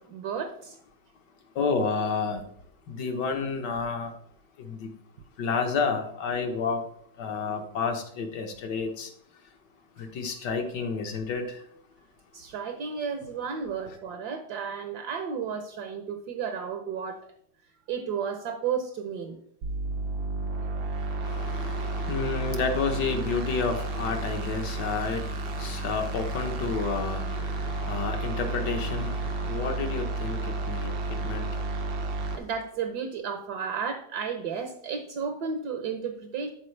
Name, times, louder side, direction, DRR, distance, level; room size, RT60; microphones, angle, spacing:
voice 1, 0.1-0.7 12.3-17.2 17.9-19.4 32.4-36.5, right 6 dB, 65° right, 6 dB, 1.3 m, -33 dB
voice 2, 1.6-2.4 2.9-4.1 4.6-4.9 5.4-6.8 7.2-9.1 10.0-11.5 21.2-31.6, left 5 dB, 65° left, 5 dB, 1.6 m, -30 dB
sound 1, 19.6-32.4, right 2 dB, 85° right, 1.8 m, -32 dB
13.5 x 4.7 x 3.3 m, 0.65 s
omnidirectional pair, 2.0 m